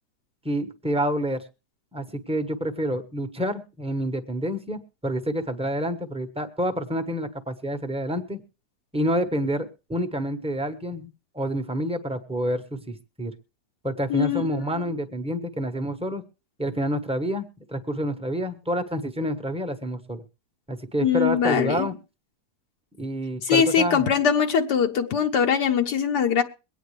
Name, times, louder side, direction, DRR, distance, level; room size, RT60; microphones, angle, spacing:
voice 1, 0.4-1.4 1.9-8.4 8.9-11.1 11.3-13.3 13.8-16.2 16.6-20.2 20.7-21.9 23.0-24.1, equal, 5° right, 7 dB, 0.9 m, -28 dB
voice 2, 14.1-14.4 14.7-14.8 21.0-21.9 23.4-26.4, left 7 dB, 75° left, 4 dB, 1.5 m, -22 dB
23.0 x 9.2 x 3.2 m, 0.31 s
omnidirectional pair, 1.8 m